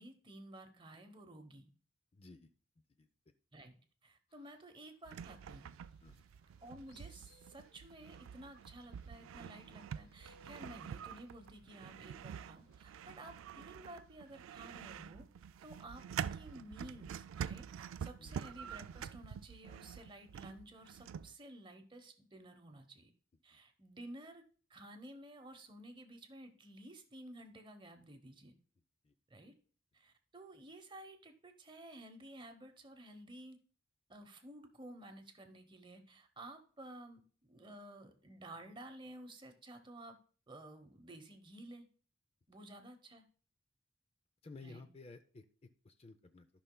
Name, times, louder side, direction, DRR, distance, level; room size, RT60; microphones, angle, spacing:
voice 1, 0.0-1.7 3.5-3.8 4.0-5.7 6.6-15.3 15.6-16.1 16.3-23.1 23.4-24.4 24.7-28.5 29.3-29.5 29.9-33.6 34.1-40.2 40.5-41.9 42.5-43.2 44.6-44.8, right 1 dB, 25° right, 6 dB, 0.9 m, -53 dB
voice 2, 2.1-2.5 2.8-3.1 6.0-6.3 18.2-18.4 23.5-23.6 29.0-29.1 44.4-46.5, left 3 dB, 30° left, 9 dB, 0.4 m, -55 dB
Fowl, 4.3-13.0, left 2 dB, 60° left, 1.6 m, -71 dB
sound 1, 5.1-21.3, right 8 dB, 90° right, 0.3 m, -47 dB
14.0 x 5.6 x 2.2 m, 0.42 s
head